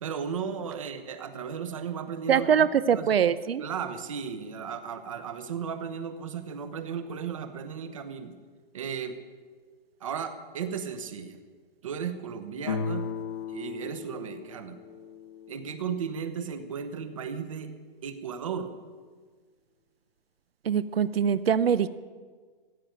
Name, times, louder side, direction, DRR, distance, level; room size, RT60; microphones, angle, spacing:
voice 1, 0.0-3.1 3.6-8.3 8.7-9.2 10.0-11.4 11.8-13.1 13.5-14.8 15.5-17.7 18.0-18.7, right 7 dB, 35° right, 9 dB, 1.0 m, -35 dB
voice 2, 2.3-3.6 20.6-21.9, right 8 dB, 85° right, 15 dB, 0.8 m, -23 dB
sound 1, 12.6-16.3, left 6 dB, 30° left, 0.7 m, -36 dB
15.5 x 9.5 x 8.9 m, 1.5 s
hypercardioid pair, 180°, 29 cm